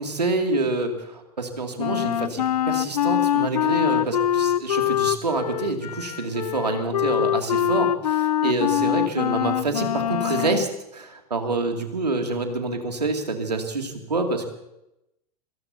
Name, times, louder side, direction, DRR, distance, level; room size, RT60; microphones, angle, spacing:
voice 1, 0.0-10.7 10.9-14.5, right 3 dB, 85° right, 4 dB, 2.6 m, -27 dB
Wind instrument woodwind instrument, 1.8-10.6, left 11 dB, 70° left, 0.6 m, -24 dB
27.5 x 18.0 x 2.8 m, 0.86 s
figure-of-eight pair, 95°, 20 cm